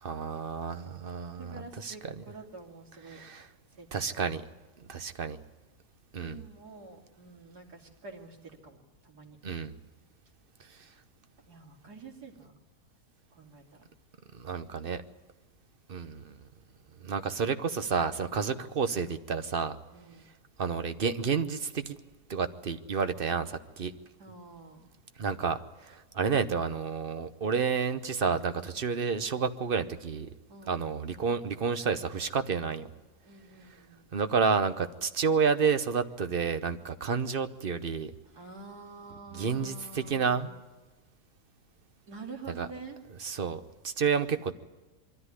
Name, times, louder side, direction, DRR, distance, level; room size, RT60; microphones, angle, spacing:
voice 1, 0.0-2.1 3.1-3.5 3.9-4.4 4.9-5.4 6.1-6.4 9.4-9.7 14.3-15.0 15.9-16.3 17.0-19.8 20.6-22.0 22.3-23.9 25.2-25.6 25.9-30.3 30.7-32.9 34.1-38.1 39.3-40.5 42.6-42.7 43.2-44.5, right 5 dB, 40° right, 10 dB, 1.0 m, -30 dB
voice 2, 1.4-3.2 3.8-4.2 6.2-9.4 11.5-12.5 13.3-13.9 19.9-20.3 24.2-24.9 30.5-30.8 32.4-32.9 33.2-34.1 37.2-37.4 38.2-40.6 42.1-43.0, right 3 dB, 70° right, 0 dB, 3.3 m, -48 dB
23.0 x 14.0 x 9.7 m, 1.2 s
omnidirectional pair, 1.7 m